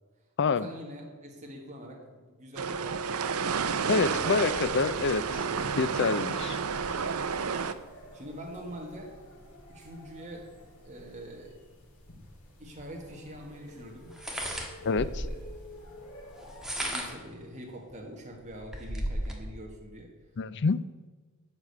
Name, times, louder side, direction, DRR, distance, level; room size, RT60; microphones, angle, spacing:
voice 1, 0.4-4.6 5.3-6.4 8.1-9.1 9.7-10.5 10.8-11.6 12.6-14.2 14.8-15.6 16.8-20.1, equal, 30° right, -1 dB, 1.6 m, -45 dB
sound 1, 2.6-7.7, right 6 dB, 75° right, 0.6 m, -30 dB
sound 2, 3.8-17.1, equal, 85° left, 4.0 m, -50 dB
voice 2, 3.9-5.2 5.8-6.6 14.8-15.2 20.4-20.9, left 4 dB, 50° left, 15 dB, 0.4 m, -27 dB
sound 3, 12.8-12.9 14.1-15.5 16.4-17.3 17.9-18.0 18.3-19.4, equal, ahead, 1.4 m, -34 dB
12.0 x 5.1 x 8.1 m, 1.4 s
head